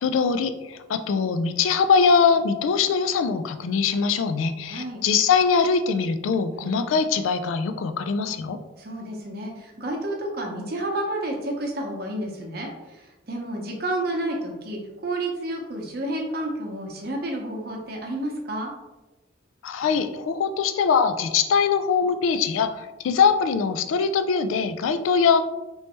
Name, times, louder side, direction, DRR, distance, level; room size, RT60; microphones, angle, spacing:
voice 1, 0.0-8.6 19.6-25.4, left 5 dB, 85° left, 9 dB, 0.3 m, -22 dB
voice 2, 4.7-5.0 6.5-6.9 8.8-18.7, right 1 dB, 50° right, 0 dB, 0.7 m, -30 dB
3.2 x 3.1 x 3.0 m, 1.1 s
head